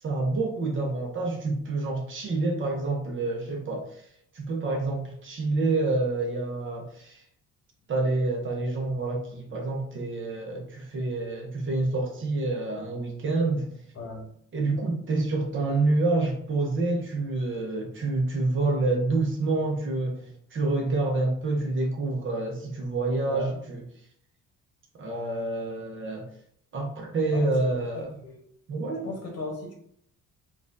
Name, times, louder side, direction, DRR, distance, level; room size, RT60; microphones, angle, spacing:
voice 1, 0.0-4.0 4.3-7.2 7.9-13.8 14.5-23.8 25.0-26.3 26.7-28.1 28.7-29.1, right 2 dB, 40° right, 0.7 m, -28 dB
voice 2, 13.9-14.3 23.3-23.6 27.3-28.4 29.0-29.7, left 2 dB, 50° left, 1.0 m, -37 dB
4.2 x 2.4 x 2.5 m
cardioid pair, 170°, 31 cm